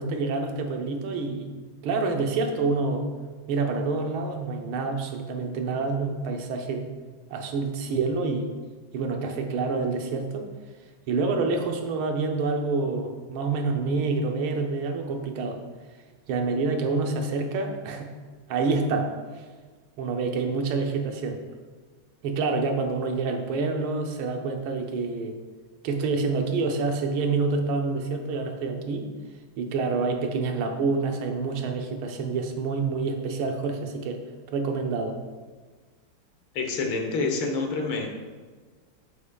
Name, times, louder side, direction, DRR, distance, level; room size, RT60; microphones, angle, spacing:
voice 1, 0.0-3.1 3.5-6.9 7.3-8.5 8.9-10.5 11.1-15.6 16.3-18.1 18.5-19.1 20.0-21.4 22.2-25.4 25.8-29.1 29.6-34.2 34.5-35.2, right 4 dB, 90° right, 4 dB, 1.6 m, -27 dB
voice 2, 36.6-38.1, left 3 dB, 75° left, 3 dB, 1.7 m, -27 dB
8.4 x 7.3 x 2.3 m, 1.4 s
omnidirectional pair, 2.2 m